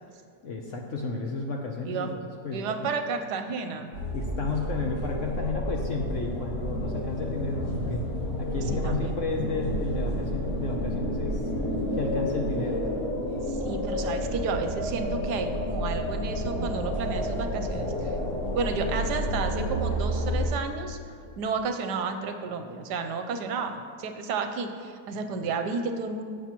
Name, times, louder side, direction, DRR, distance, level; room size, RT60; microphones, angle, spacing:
voice 1, 0.4-2.1 2.4-2.6 4.1-8.0 8.4-11.4 12.0-12.8, left 4 dB, 60° left, 1 dB, 0.9 m, -32 dB
voice 2, 2.5-3.9 8.8-9.1 13.5-18.2 18.5-26.2, right 4 dB, 75° right, 7 dB, 1.2 m, -32 dB
sound 1, 3.9-20.5, equal, 80° left, 3.5 m, -30 dB
17.0 x 7.0 x 3.0 m, 2.2 s
omnidirectional pair, 1.9 m